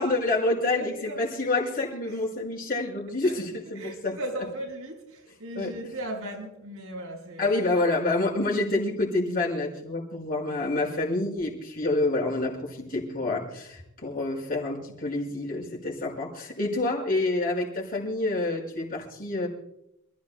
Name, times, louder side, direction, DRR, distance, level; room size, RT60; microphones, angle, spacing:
voice 1, 0.0-4.1 5.6-5.7 7.4-19.5, left 2 dB, 45° left, 5.3 m, -28 dB
voice 2, 0.7-1.2 2.0-2.2 3.2-3.3 3.7-7.7, right 1 dB, 75° right, 4.7 m, -37 dB
28.0 x 14.5 x 2.2 m
head